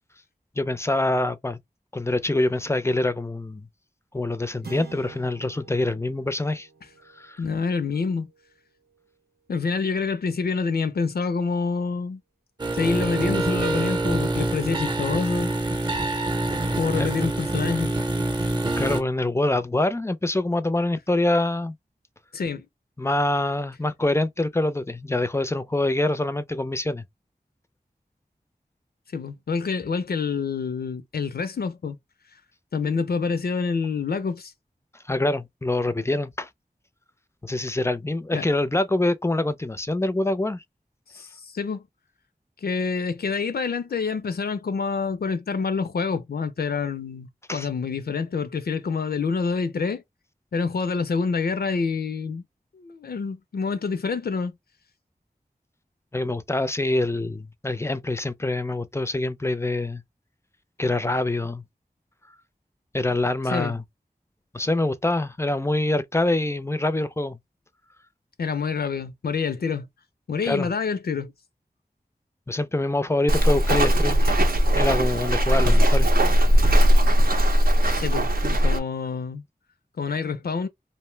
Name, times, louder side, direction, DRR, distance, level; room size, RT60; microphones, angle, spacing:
voice 1, 0.6-1.6 1.9-3.7 4.1-6.7 7.2-7.4 17.0-17.1 18.8-21.7 23.0-27.0 35.1-36.5 37.4-40.6 47.5-47.7 56.1-60.0 60.8-61.6 62.9-63.8 64.5-67.4 70.4-70.7 72.5-74.3 74.7-76.1, left 2 dB, 15° left, 0.4 m, -25 dB
sound 1, 4.6-9.1, right 5 dB, 90° right, 0.9 m, -47 dB
voice 2, 7.4-8.3 9.5-12.2 12.7-15.5 16.8-17.9 22.3-22.7 29.1-32.0 32.7-34.5 38.3-38.5 41.1-41.8 42.6-50.0 50.5-52.4 52.7-54.5 63.5-63.8 68.4-69.9 70.3-71.3 78.0-79.4 80.0-80.7, left 5 dB, 80° left, 0.4 m, -27 dB
sound 2, 12.6-19.0, right 2 dB, 25° right, 0.7 m, -26 dB
Walk footsteps, 73.3-78.8, equal, 70° right, 0.6 m, -19 dB
2.7 x 2.0 x 3.1 m
wide cardioid pair, 60°, 16 cm